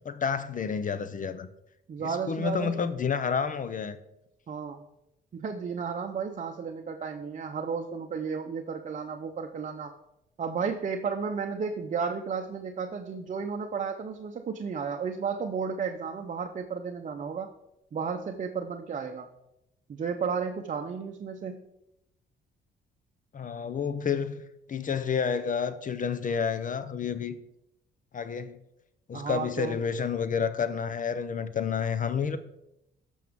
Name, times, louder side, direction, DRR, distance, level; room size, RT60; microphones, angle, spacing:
voice 1, 0.0-1.5 2.0-4.0 23.3-24.4 24.7-27.4 28.1-28.6 29.1-32.4, left 6 dB, 40° left, 0.6 m, -30 dB
voice 2, 1.9-2.8 4.5-4.8 5.3-9.9 10.4-17.5 17.9-19.3 19.9-21.6 29.1-29.8, right 6 dB, 40° right, 0.7 m, -33 dB
14.0 x 6.2 x 3.6 m
cardioid pair, 90°, 20 cm